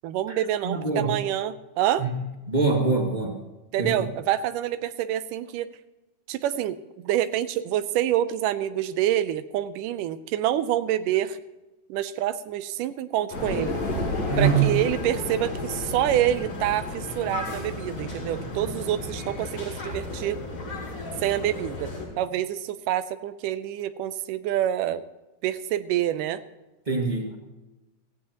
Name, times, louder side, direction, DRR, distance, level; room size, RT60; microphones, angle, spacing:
voice 1, 0.0-2.1 3.7-5.7 6.3-11.4 11.9-13.8 14.4-20.4 21.2-21.9 22.2-25.0 25.4-26.4, right 12 dB, 85° right, 12 dB, 2.3 m, -27 dB
voice 2, 0.6-1.1 2.0-2.2 2.5-3.4 3.8-4.1 14.3-14.7 26.9-27.4, right 4 dB, 20° right, 1 dB, 1.3 m, -24 dB
sound 1, 13.3-22.1, left 2 dB, 75° left, 6.9 m, -35 dB
sound 2, 13.3-19.3, left 1 dB, 40° left, 2.9 m, -34 dB
17.0 x 16.5 x 3.0 m, 1.1 s
omnidirectional pair, 3.7 m